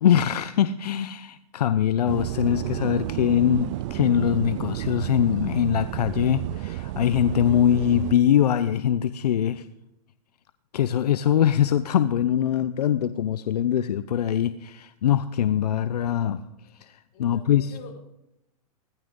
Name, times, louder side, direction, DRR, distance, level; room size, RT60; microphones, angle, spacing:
voice 1, 0.0-9.7 10.7-16.4 16.8-17.7, left 10 dB, 80° left, 13 dB, 0.7 m, -23 dB
sound 1, 2.1-8.1, right 16 dB, 50° right, 0.5 m, -31 dB
voice 2, 17.1-18.0, left 6 dB, 40° left, -3 dB, 5.6 m, -44 dB
18.0 x 14.5 x 3.8 m, 0.85 s
hypercardioid pair, 130°, 20 cm